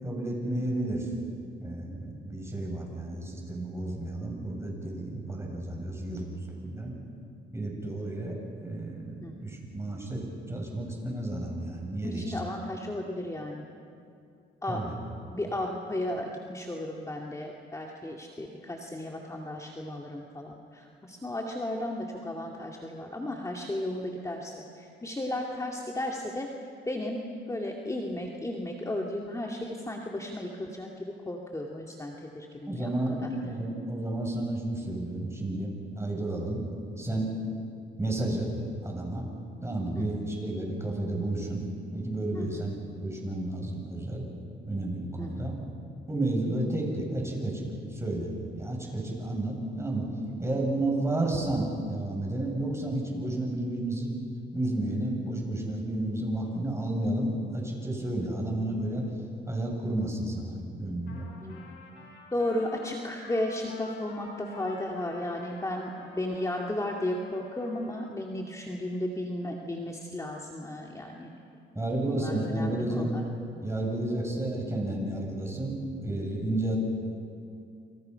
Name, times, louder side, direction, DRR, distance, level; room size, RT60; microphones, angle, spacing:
voice 1, 0.0-1.1 1.6-6.9 7.5-12.3 14.7-14.9 32.7-36.6 37.0-37.3 38.0-38.5 38.8-39.3 39.6-41.7 41.9-42.7 43.0-44.2 44.7-45.6 46.1-50.1 50.4-54.1 54.5-59.1 59.5-61.6 71.7-73.1 73.6-76.8, right 1 dB, 15° right, -1 dB, 8.0 m, -31 dB
voice 2, 12.0-13.7 14.6-14.9 15.3-27.2 27.5-32.9 33.2-33.3 39.9-40.1 42.3-42.7 45.2-45.5 62.3-71.3 72.1-73.2, left 1 dB, 15° left, 0 dB, 2.3 m, -34 dB
Trumpet, 61.1-68.2, left 3 dB, 70° left, 7.0 m, -49 dB
29.5 x 26.5 x 5.8 m, 2.5 s
cardioid pair, 90°, 20 cm